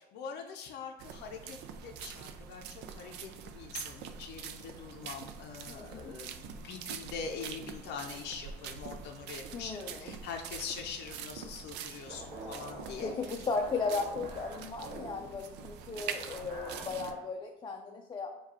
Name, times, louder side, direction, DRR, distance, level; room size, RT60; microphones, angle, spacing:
voice 1, 0.1-13.1, left 6 dB, 85° left, 3 dB, 0.5 m, -43 dB
sound 1, 1.0-17.1, right 7 dB, 90° right, 0.4 m, -45 dB
voice 2, 5.7-6.1 9.5-10.1 13.0-18.3, left 4 dB, 25° left, 2 dB, 0.4 m, -36 dB
sound 2, 12.1-17.2, right 1 dB, 45° right, 1.0 m, -47 dB
4.9 x 2.3 x 4.1 m, 0.96 s
cardioid pair, 110°, 17 cm